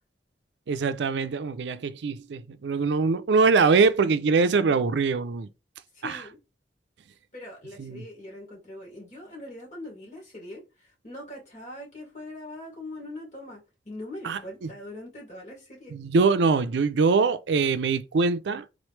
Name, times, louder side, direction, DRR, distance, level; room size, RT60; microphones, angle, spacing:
voice 1, 0.7-5.5 6.0-6.2 7.8-8.0 14.2-14.7 15.9-18.6, right 4 dB, 75° right, 0.4 m, -23 dB
voice 2, 5.9-6.4 7.3-16.0, left 1 dB, 40° left, 2.3 m, -42 dB
3.9 x 3.1 x 3.2 m
head